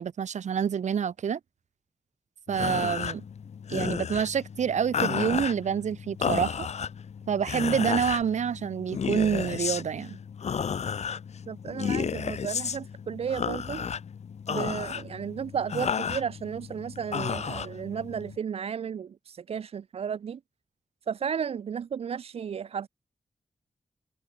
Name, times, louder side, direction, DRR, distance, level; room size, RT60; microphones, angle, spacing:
voice 1, 0.0-1.4 2.5-3.2 3.7-6.7 7.3-10.2, right 7 dB, 80° right, 1.1 m, -27 dB
sound 1, 2.5-18.4, left 7 dB, 65° left, 1.0 m, -33 dB
voice 2, 11.5-13.9 14.5-20.4 21.1-22.9, right 7 dB, 55° right, 0.4 m, -33 dB
wide cardioid pair, 105°, 12 cm